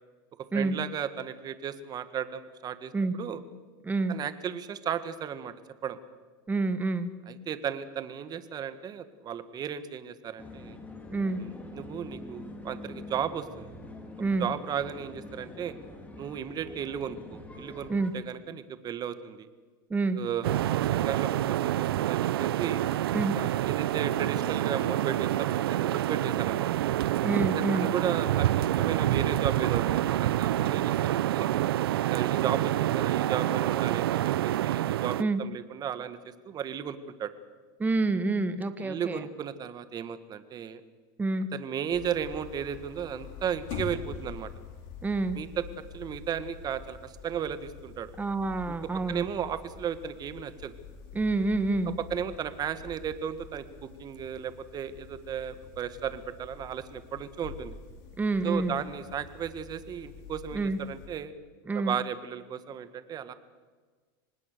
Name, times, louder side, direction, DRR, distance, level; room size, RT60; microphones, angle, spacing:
voice 1, 0.5-2.9 3.2-3.4 4.1-5.5 5.8-6.0 7.3-10.8 11.4-13.7 14.4-15.7 16.2-17.9 18.1-19.5 20.1-22.8 23.3-26.7 27.7-31.5 32.0-36.2 36.4-37.3 38.8-40.8 41.5-44.5 45.3-45.6 45.9-48.1 48.8-50.7 52.1-57.7 58.4-61.3 61.7-63.3, right 8 dB, 35° right, 12 dB, 1.8 m, -35 dB
voice 2, 3.8-4.2 6.5-7.1 11.1-11.4 14.2-14.5 17.9-18.1 19.9-20.2 23.1-23.4 27.2-27.9 35.2-35.4 37.8-39.2 41.2-41.5 45.0-45.4 48.2-49.2 51.1-52.0 58.2-58.7 60.5-60.8 61.7-62.0, right 3 dB, 15° right, 11 dB, 1.4 m, -28 dB
sound 1, 10.4-18.1, left 2 dB, 10° left, 3.7 m, -45 dB
sound 2, 20.4-35.2, right 13 dB, 85° right, 0.6 m, -27 dB
sound 3, 41.9-61.1, left 7 dB, 65° left, 5.0 m, -46 dB
25.0 x 19.5 x 6.9 m, 1.4 s
supercardioid pair, 115°, 12 cm